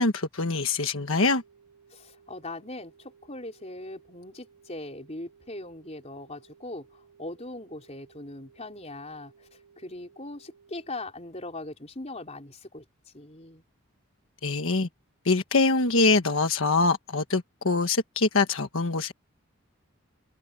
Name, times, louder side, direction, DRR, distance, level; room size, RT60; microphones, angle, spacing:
voice 1, 0.0-1.4 14.4-14.9 15.2-19.1, left 3 dB, 70° left, 1.4 m, -24 dB
sound 1, 1.1-11.1, right 6 dB, 85° right, 4.8 m, -59 dB
voice 2, 1.9-12.8 13.1-13.6, left 2 dB, 30° left, 4.3 m, -40 dB
head